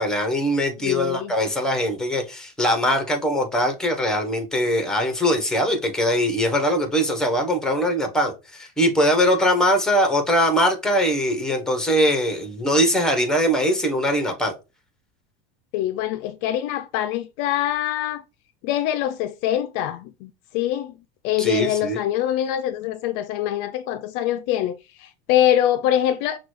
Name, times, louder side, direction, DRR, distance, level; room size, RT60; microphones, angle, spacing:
voice 1, 0.0-14.5 21.4-22.0, equal, ahead, 0.8 m, -21 dB
voice 2, 0.8-1.3 15.7-18.2 18.6-20.9 21.2-26.4, left 12 dB, 55° left, 0.4 m, -24 dB
5.9 x 2.3 x 3.1 m
supercardioid pair, 130°, 30 cm